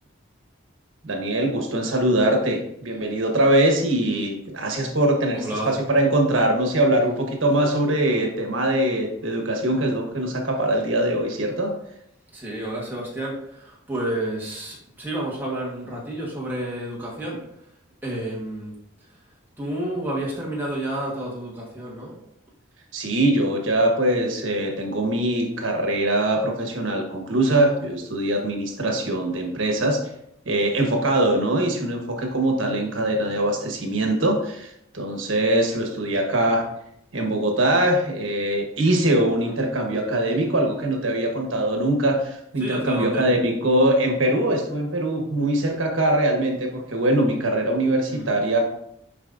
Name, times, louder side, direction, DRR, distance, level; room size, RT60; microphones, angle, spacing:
voice 1, 1.0-11.7 22.9-30.0 30.4-36.7 37.1-48.6, right 1 dB, 75° right, 2 dB, 1.2 m, -22 dB
voice 2, 5.3-5.7 12.3-17.4 18.0-18.7 19.0-19.1 19.6-22.2 39.4-39.6 42.6-43.3 48.1-48.3, right 1 dB, 10° right, -4 dB, 1.3 m, -30 dB
7.5 x 5.2 x 2.6 m, 0.76 s
head